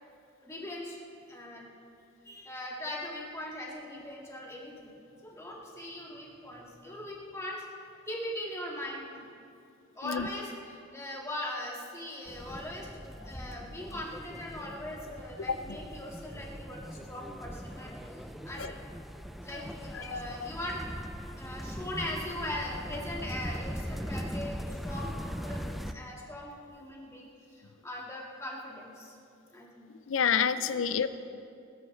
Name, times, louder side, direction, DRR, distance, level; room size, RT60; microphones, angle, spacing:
voice 1, 0.4-1.0 1.3-1.7 2.2-7.6 8.1-9.3 10.0-12.9 13.2-18.8 19.4-20.8 21.4-29.1 29.5-29.9 30.6-30.8, left 1 dB, 15° left, -3 dB, 2.1 m, -40 dB
sound 1, 12.3-25.9, equal, ahead, 0.4 m, -40 dB
voice 2, 19.9-20.5 30.1-31.1, left 7 dB, 80° left, 13 dB, 0.5 m, -29 dB
20.0 x 13.0 x 3.3 m, 2.5 s
head